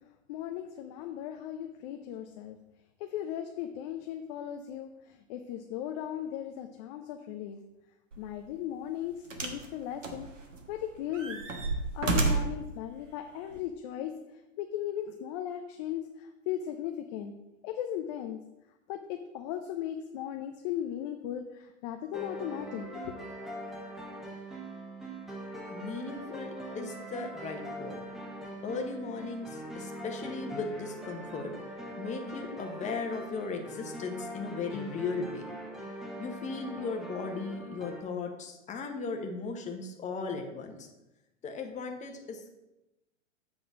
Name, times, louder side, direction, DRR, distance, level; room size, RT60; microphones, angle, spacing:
voice 1, 0.3-2.6 3.0-7.6 8.2-10.3 10.7-11.4 11.9-14.1 14.6-17.3 17.6-18.4 18.9-23.1, left 10 dB, 35° left, 6 dB, 0.6 m, -37 dB
sound 1, 8.1-8.3 9.3-9.7 10.0-10.7 11.1-12.6 13.5-13.6, right 3 dB, 75° right, 1.4 m, -30 dB
sound 2, 22.1-38.0, equal, ahead, 1.0 m, -42 dB
voice 2, 25.7-28.0 28.6-31.5 32.0-35.4 36.2-40.9 41.4-42.6, left 4 dB, 20° left, 4 dB, 1.1 m, -37 dB
7.9 x 3.8 x 6.2 m, 0.95 s
hypercardioid pair, 105°, 38 cm